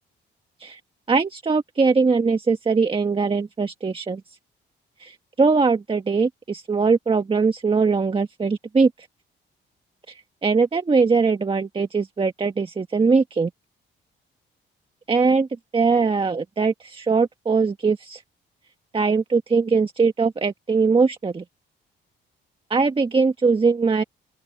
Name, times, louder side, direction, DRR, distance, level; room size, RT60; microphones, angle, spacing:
voice 1, 1.1-4.2 5.0-8.9 10.1-13.5 15.1-15.5 15.7-18.2 18.9-21.4 22.7-24.0, right 4 dB, 25° right, 1.6 m, -21 dB
open air
cardioid pair, 90°, 20 cm